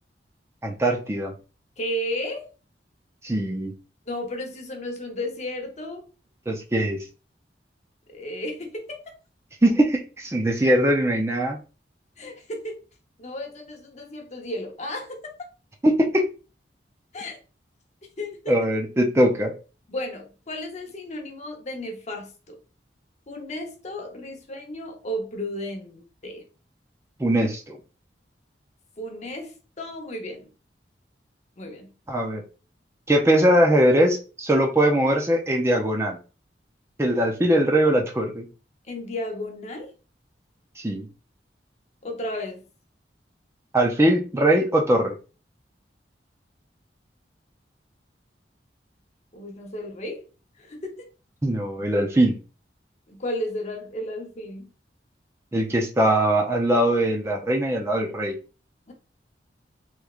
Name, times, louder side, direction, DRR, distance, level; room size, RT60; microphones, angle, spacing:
voice 1, 0.6-1.3 3.2-3.7 6.5-7.0 9.6-11.6 15.8-16.2 18.5-19.5 27.2-27.8 32.1-32.4 33.1-36.2 37.0-38.5 40.8-41.1 43.7-45.1 51.4-52.4 55.5-58.4, right 1 dB, 15° right, 0.5 m, -21 dB
voice 2, 1.8-2.5 4.1-6.1 8.1-9.1 12.2-12.8 13.2-15.5 17.1-17.4 18.2-18.6 19.9-22.6 23.3-26.4 29.0-30.5 31.6-31.9 38.9-39.9 42.0-42.6 49.3-50.2 50.6-51.1 53.1-54.7 58.9-59.0, left 1 dB, 40° left, 0.8 m, -33 dB
3.4 x 3.1 x 2.4 m
head